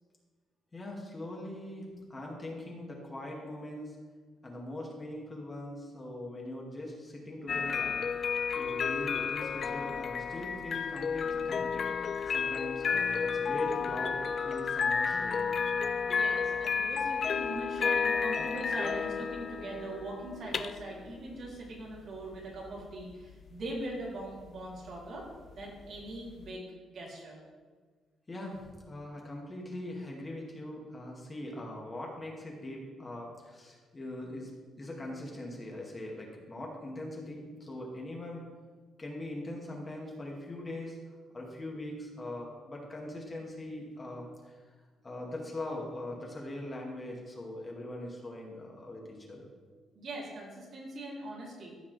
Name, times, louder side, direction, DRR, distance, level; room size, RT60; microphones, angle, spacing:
voice 1, 0.7-4.0 4.4-8.0 8.6-11.9 12.3-15.5 28.3-34.5 34.8-38.4 39.0-41.0 41.3-44.6 45.0-49.5, left 1 dB, 25° left, -2 dB, 2.3 m, -41 dB
sound 1, 7.5-26.5, left 6 dB, 50° left, 0.3 m, -32 dB
voice 2, 16.0-25.2 25.5-27.4 49.9-51.7, right 1 dB, 60° right, -3 dB, 3.1 m, -41 dB
14.5 x 5.7 x 3.4 m, 1.4 s
cardioid pair, 90°, 0 cm